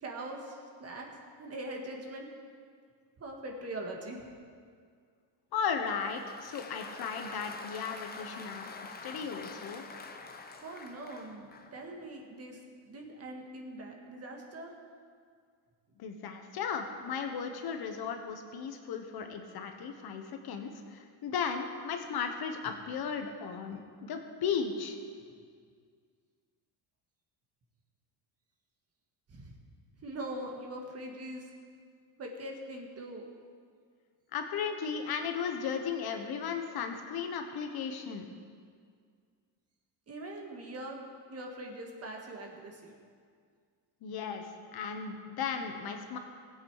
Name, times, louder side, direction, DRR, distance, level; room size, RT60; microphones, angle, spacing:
voice 1, 0.0-1.1 1.4-2.3 3.2-4.3 10.5-14.7 29.3-29.5 30.0-31.5 32.2-33.2 40.1-41.0 41.3-43.0, right 1 dB, 30° right, 1 dB, 1.7 m, -42 dB
voice 2, 5.5-8.6 9.0-9.8 16.0-25.0 34.3-38.3 44.0-46.2, left 6 dB, 55° left, 5 dB, 1.2 m, -36 dB
Applause, 5.6-11.8, left 4 dB, 20° left, 0.7 m, -46 dB
19.5 x 8.3 x 4.9 m, 2.1 s
cardioid pair, 155°, 46 cm